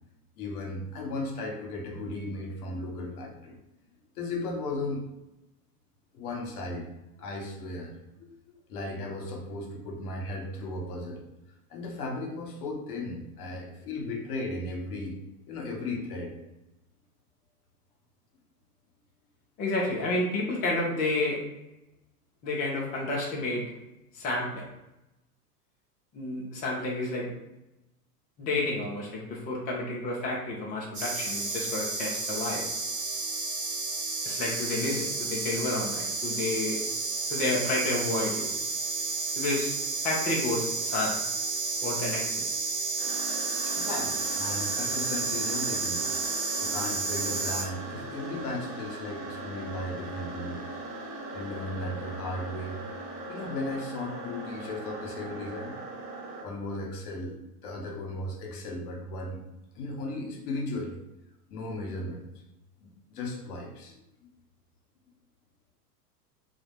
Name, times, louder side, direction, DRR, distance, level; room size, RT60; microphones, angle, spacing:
voice 1, 0.4-3.6 4.2-5.0 6.1-6.9 7.2-11.2 11.7-15.2 15.5-16.3 43.7-46.1 46.6-50.7 51.0-52.8 53.3-55.8 56.4-57.4 57.6-59.4 59.7-61.0 61.5-62.3 62.8-64.0, left 2 dB, 65° left, 0 dB, 0.9 m, -36 dB
voice 2, 19.6-21.4 22.4-23.6 24.1-24.6 26.1-27.3 28.4-32.6 34.2-36.8 37.3-38.5 39.4-39.7 40.0-41.1 41.8-42.5, left 2 dB, 20° left, -3 dB, 0.4 m, -30 dB
sound 1, 30.9-47.6, right 3 dB, 20° right, 0.8 m, -31 dB
sound 2, 43.0-56.4, right 2 dB, 75° right, 0.9 m, -40 dB
2.4 x 2.1 x 2.9 m, 0.92 s
hypercardioid pair, 95°, 47 cm